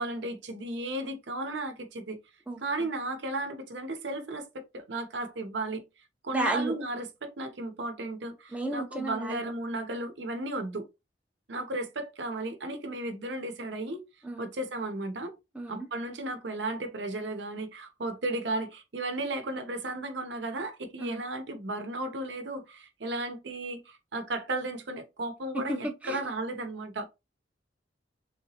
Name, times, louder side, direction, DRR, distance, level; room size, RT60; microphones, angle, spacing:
voice 1, 0.0-2.2 2.6-5.8 6.2-10.9 11.5-14.0 14.4-15.3 15.7-27.1, right 2 dB, 80° right, 0.7 m, -34 dB
voice 2, 6.3-6.8 8.5-9.5 14.2-14.4 15.5-15.9 21.0-21.2 25.5-25.8 26.0-26.2, right 2 dB, 10° right, 0.5 m, -32 dB
3.2 x 2.9 x 2.8 m
head